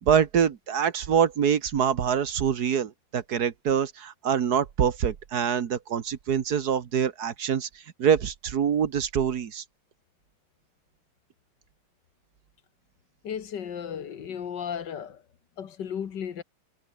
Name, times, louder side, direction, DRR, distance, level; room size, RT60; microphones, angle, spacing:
voice 1, 0.0-7.7 8.0-9.6, right 8 dB, 60° right, 1.7 m, -25 dB
voice 2, 13.2-15.2 15.6-16.4, left 8 dB, 75° left, 2.0 m, -34 dB
omnidirectional pair, 2.0 m